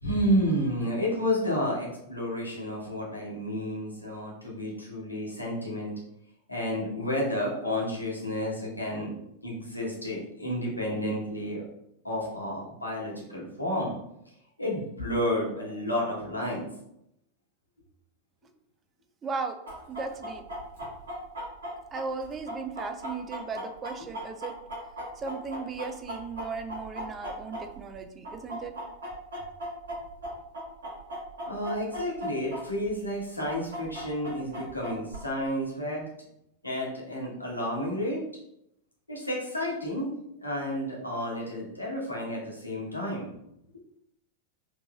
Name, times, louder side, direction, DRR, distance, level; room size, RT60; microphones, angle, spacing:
voice 1, 0.0-5.9 6.5-9.1 9.4-11.6 12.0-13.9 14.6-16.7 31.5-36.1 36.6-38.2 39.1-40.1 40.4-43.3, equal, 85° left, -4 dB, 1.1 m, -31 dB
voice 2, 19.2-19.6 19.9-20.4 21.9-24.5 25.2-28.8, right 4 dB, 25° right, 7 dB, 0.4 m, -36 dB
Chicken rooster, 19.7-28.0 28.2-32.6 32.9-33.0 33.4-35.2, equal, 65° right, 1.3 m, -37 dB
3.7 x 3.0 x 2.3 m, 0.79 s
figure-of-eight pair, 90°, 0 cm